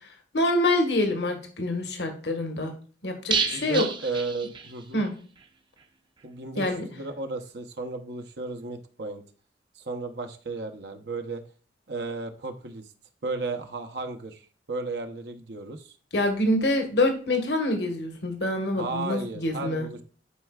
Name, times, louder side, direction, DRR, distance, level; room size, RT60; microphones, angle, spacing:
voice 1, 0.3-2.7 3.0-3.8 4.9-5.1 6.6-6.9 16.1-19.9, left 1 dB, 70° left, 5 dB, 1.5 m, -26 dB
sound 1, 3.3-5.1 5.4-5.5 5.8-5.9, right 5 dB, 25° right, 0.7 m, -30 dB
voice 2, 3.5-5.0 6.2-9.2 9.7-11.4 11.9-12.9 13.2-16.0 18.7-20.0, right 3 dB, 65° right, 6 dB, 0.9 m, -34 dB
11.0 x 4.5 x 2.4 m, 0.40 s
head